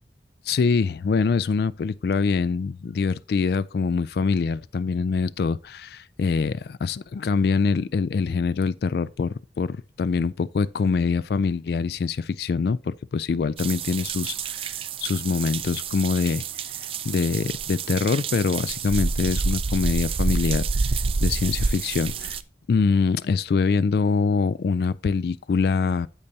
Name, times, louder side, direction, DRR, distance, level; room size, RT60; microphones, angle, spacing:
voice 1, 0.4-16.4 16.7-20.9 21.2-22.4 22.7-26.1, left 5 dB, 60° left, 0.3 m, -24 dB
sound 1, 13.6-22.4, right 4 dB, 30° right, 0.4 m, -28 dB
8.6 x 8.1 x 2.7 m
head